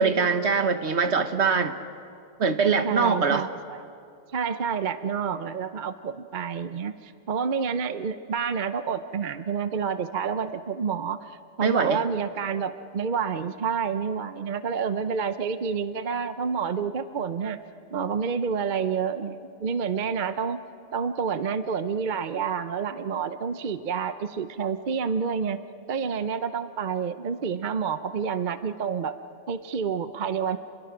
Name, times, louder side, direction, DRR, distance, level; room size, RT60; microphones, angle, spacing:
voice 1, 0.0-1.8 2.4-3.5 11.6-12.0, right 5 dB, 65° right, 8 dB, 1.5 m, -23 dB
voice 2, 2.8-3.8 4.3-17.6 17.9-20.6 20.9-25.6 25.9-29.1 29.5-30.6, right 6 dB, 45° right, 11 dB, 0.8 m, -29 dB
30.0 x 22.0 x 6.1 m, 2.5 s
omnidirectional pair, 1.2 m